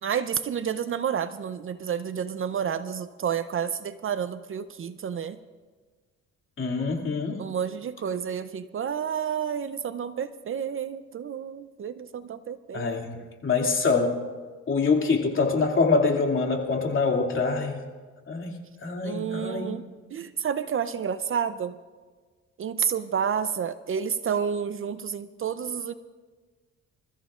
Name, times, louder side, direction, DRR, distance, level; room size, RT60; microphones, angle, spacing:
voice 1, 0.0-5.4 7.4-13.0 19.0-19.8 20.1-21.8 22.6-25.9, right 7 dB, 45° right, 12 dB, 0.6 m, -30 dB
voice 2, 6.6-7.4 12.7-13.1 13.4-14.2 14.7-17.8 18.3-19.8, left 4 dB, 40° left, 1 dB, 2.5 m, -25 dB
26.5 x 14.5 x 2.5 m, 1.4 s
cardioid pair, 90°, 30 cm